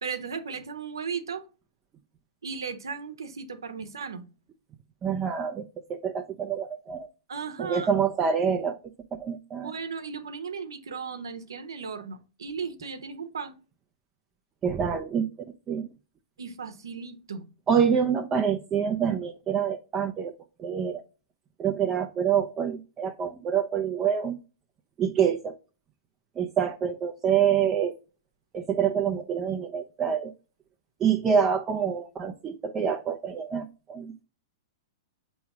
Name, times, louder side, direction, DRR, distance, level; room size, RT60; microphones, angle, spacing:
voice 1, 0.0-1.4 2.4-4.2 7.3-7.9 9.6-13.6 16.4-17.4, right 5 dB, 85° right, 0.9 m, -36 dB
voice 2, 5.0-5.6 5.9-7.1 7.6-8.8 9.2-9.7 14.6-15.3 15.7-15.9 17.7-20.3 20.6-21.0 21.6-24.4 25.0-25.6 26.4-27.9 28.5-30.3 31.0-34.2, right 7 dB, 25° right, 0.6 m, -26 dB
7.0 x 3.1 x 4.7 m
hypercardioid pair, 115°, 2 cm